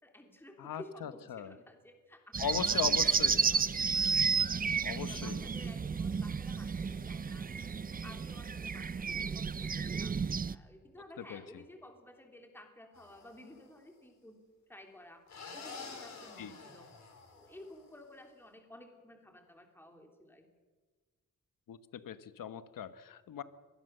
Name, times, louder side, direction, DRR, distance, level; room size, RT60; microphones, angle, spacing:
voice 1, 0.0-3.7 4.1-10.2 10.5-14.4 14.7-15.2 15.5-16.9 17.3-20.5, left 1 dB, 5° left, 3 dB, 3.1 m, -54 dB
voice 2, 0.6-1.5 2.4-3.4 4.8-5.4 11.2-11.6 16.4-16.5 21.7-23.4, left 8 dB, 85° left, 12 dB, 1.3 m, -39 dB
sound 1, 2.3-10.6, right 5 dB, 25° right, 0.5 m, -32 dB
sound 2, 12.9-13.7 15.3-17.9, left 4 dB, 55° left, 5.5 m, -49 dB
24.5 x 19.5 x 6.7 m, 1.4 s
wide cardioid pair, 120°, 33 cm